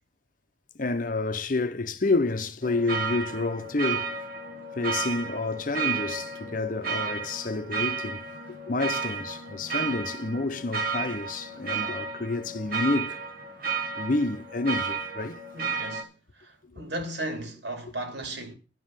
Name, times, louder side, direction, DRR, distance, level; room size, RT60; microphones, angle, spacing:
voice 1, 0.8-4.2 4.8-8.2 8.7-13.2 14.0-15.4, left 3 dB, 45° left, 0.7 m, -29 dB
sound 1, 2.6-16.0, right 5 dB, 50° right, 1.3 m, -33 dB
voice 2, 15.5-16.1 16.4-18.5, right 1 dB, 65° right, 2.6 m, -35 dB
10.5 x 5.4 x 7.4 m
head